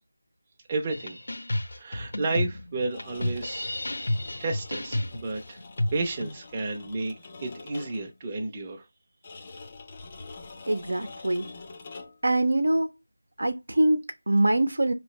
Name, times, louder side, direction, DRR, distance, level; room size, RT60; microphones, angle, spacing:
voice 1, 0.7-1.2 1.7-3.7 4.4-5.6 5.9-7.1 7.4-8.8, right 3 dB, 20° right, 0.6 m, -32 dB
sound 1, 0.9-6.3, left 1 dB, 75° left, 0.8 m, -31 dB
sound 2, 2.8-8.2 9.2-12.3, left 3 dB, 25° left, 0.5 m, -45 dB
voice 2, 10.7-11.5 12.2-12.9 13.4-14.9, right 1 dB, 75° right, 0.8 m, -24 dB
4.5 x 3.1 x 3.0 m
figure-of-eight pair, 170°, 0 cm